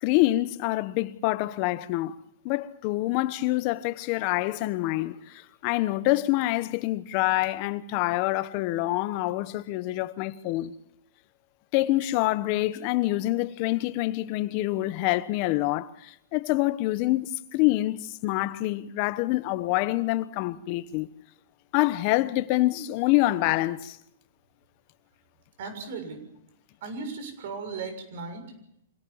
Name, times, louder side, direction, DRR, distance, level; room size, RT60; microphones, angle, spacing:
voice 1, 0.0-2.2 2.4-10.7 11.7-21.1 21.7-24.0, left 17 dB, 35° left, 1.1 m, -26 dB
voice 2, 25.6-26.2 26.8-28.5, right 4 dB, 55° right, 6.9 m, -36 dB
26.5 x 17.5 x 7.3 m
hypercardioid pair, 155°, 0 cm